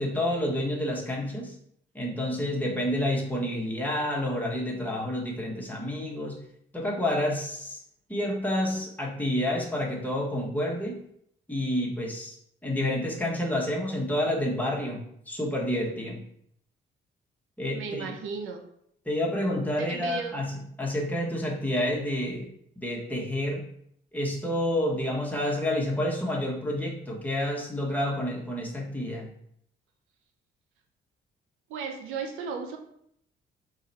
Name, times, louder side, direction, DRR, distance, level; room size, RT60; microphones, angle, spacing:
voice 1, 0.0-1.5 1.9-6.4 6.7-7.8 8.1-11.0 11.5-12.4 12.6-16.2 17.6-18.1 19.0-22.5 22.8-23.7 24.1-29.3, left 1 dB, 10° left, -3 dB, 1.2 m, -29 dB
voice 2, 17.7-18.6 19.8-20.4 31.7-32.8, right 5 dB, 90° right, 4 dB, 0.7 m, -35 dB
3.8 x 3.3 x 4.1 m, 0.71 s
cardioid pair, 90°, 20 cm